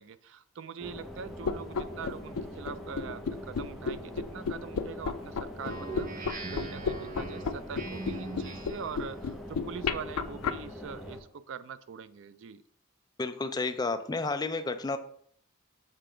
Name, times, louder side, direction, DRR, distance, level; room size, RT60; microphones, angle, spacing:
voice 1, 0.0-12.6, right 6 dB, 60° right, 14 dB, 0.4 m, -43 dB
sound 1, 0.8-11.2, left 1 dB, ahead, 0.8 m, -43 dB
sound 2, 1.4-10.5, left 5 dB, 85° left, 0.4 m, -32 dB
Speech synthesizer, 5.6-8.9, right 3 dB, 40° right, 0.8 m, -41 dB
voice 2, 13.2-15.0, left 3 dB, 20° left, 8 dB, 0.3 m, -31 dB
6.8 x 3.3 x 4.9 m, 0.63 s
head